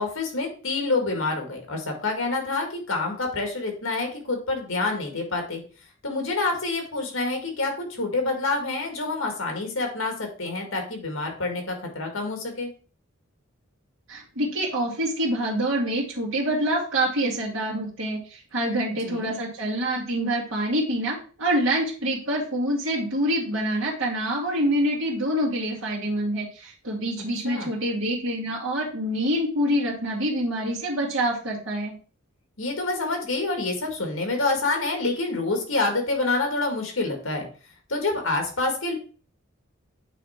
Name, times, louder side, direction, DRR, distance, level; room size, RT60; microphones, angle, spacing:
voice 1, 0.0-5.6 6.0-12.7 19.1-19.3 27.4-27.7 32.6-37.5 37.9-38.9, left 3 dB, 75° left, 3 dB, 1.9 m, -27 dB
voice 2, 14.1-31.9, right 1 dB, 65° right, -5 dB, 2.2 m, -26 dB
8.3 x 3.3 x 4.3 m, 0.38 s
head